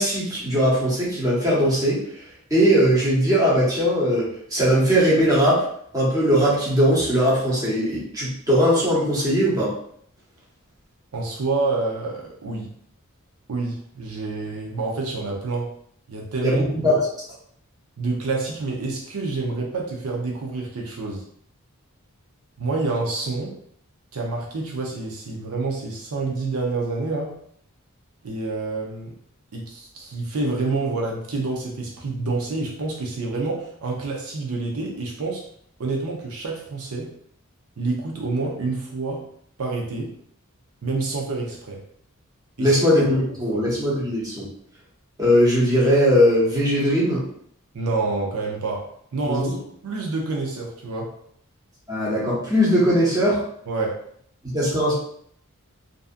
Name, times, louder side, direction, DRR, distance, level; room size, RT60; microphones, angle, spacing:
voice 1, 0.0-2.0 2.5-5.6 5.9-9.7 16.4-17.0 42.6-44.4 45.2-47.2 49.3-49.5 51.9-53.4 54.5-54.9, equal, 15° right, -7 dB, 0.9 m, -19 dB
voice 2, 11.1-12.7 13.5-15.7 16.1-16.9 18.0-21.2 22.6-23.6 24.1-27.3 28.2-29.1 29.5-35.4 35.8-37.1 37.8-39.2 39.6-40.1 40.8-41.8 42.6-42.8 43.5-43.6 47.7-48.9 49.1-49.6 49.8-51.1 53.7-54.0, right 3 dB, 75° right, -1 dB, 0.6 m, -28 dB
2.6 x 2.4 x 2.4 m, 0.65 s
head